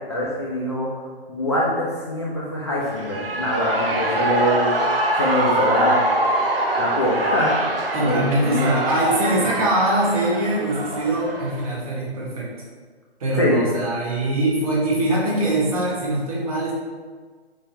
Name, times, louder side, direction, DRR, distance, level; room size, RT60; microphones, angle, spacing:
voice 1, 0.1-6.0 6.8-7.5 8.0-8.7 9.3-9.5 13.3-13.6, left 1 dB, 25° left, -6 dB, 0.4 m, -24 dB
Shout / Cheering, 2.8-11.7, right 2 dB, 60° right, 0.7 m, -24 dB
voice 2, 7.9-12.5 13.2-16.7, right 1 dB, 35° right, -4 dB, 1.1 m, -22 dB
4.4 x 3.5 x 2.8 m, 1.5 s
figure-of-eight pair, 140°, 32 cm